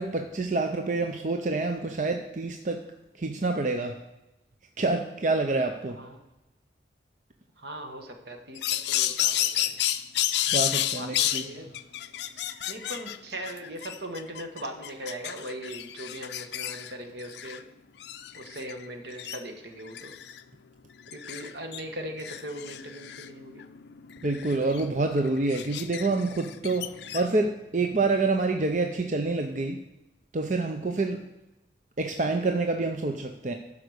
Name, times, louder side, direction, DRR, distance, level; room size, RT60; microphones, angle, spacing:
voice 1, 0.0-2.8 3.2-4.0 4.8-6.0 10.5-11.4 24.2-29.8 30.3-31.2 32.0-33.5, right 3 dB, 40° right, 5 dB, 0.6 m, -27 dB
voice 2, 7.6-9.8 10.9-11.7 12.7-17.6 18.3-20.2 21.1-23.6, right 1 dB, 70° right, 5 dB, 1.4 m, -39 dB
sound 1, 8.6-11.5 11.7-13.2 13.4-16.9 17.2-17.6 18.0-18.8 19.1-19.4 19.9-20.4 21.1-21.8 22.2-27.3, left 12 dB, 75° left, 0.5 m, -31 dB
12.0 x 4.9 x 6.4 m, 0.96 s
head